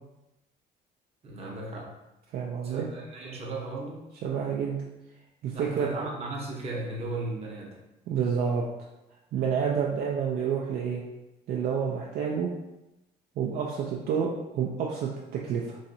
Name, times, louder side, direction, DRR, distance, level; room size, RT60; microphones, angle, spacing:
voice 1, 1.2-1.9 2.6-4.1 5.5-7.7, right 2 dB, 40° right, -2 dB, 0.8 m, -36 dB
voice 2, 2.3-2.9 4.2-4.8 5.4-5.9 8.1-8.6 9.3-11.0 11.5-12.5 13.4-15.8, right 7 dB, 60° right, -2 dB, 0.4 m, -29 dB
3.1 x 2.7 x 2.6 m, 0.96 s
cardioid pair, 110°, 17 cm